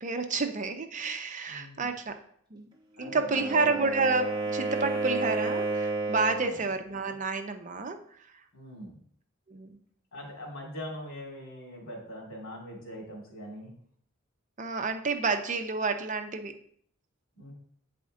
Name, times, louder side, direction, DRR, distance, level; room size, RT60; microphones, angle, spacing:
voice 1, 0.0-2.2 2.5-2.7 3.0-8.0 9.5-9.8 14.6-16.5, right 4 dB, 40° right, 6 dB, 0.6 m, -30 dB
voice 2, 1.5-1.9 3.0-3.8 6.3-6.6 8.5-9.0 10.1-13.7 17.4-17.5, equal, 90° left, -2 dB, 2.5 m, -42 dB
Wind instrument woodwind instrument, 3.0-6.6, right 3 dB, 20° right, 1.0 m, -31 dB
8.4 x 4.3 x 3.7 m, 0.62 s
head